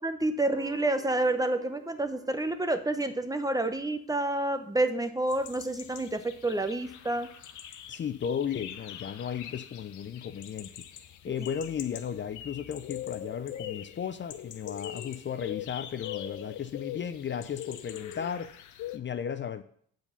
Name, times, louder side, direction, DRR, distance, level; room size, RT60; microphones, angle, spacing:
voice 1, 0.0-7.3, right 2 dB, 10° right, 8 dB, 0.8 m, -29 dB
Guitar, 0.5-5.4, right 3 dB, 55° right, 1.8 m, -51 dB
sound 1, 5.3-19.0, left 11 dB, 75° left, 0.8 m, -43 dB
voice 2, 7.9-10.7 11.2-18.5 18.9-19.6, left 8 dB, 40° left, 11 dB, 0.5 m, -35 dB
7.7 x 4.8 x 6.8 m, 0.63 s
cardioid pair, 90°, 30 cm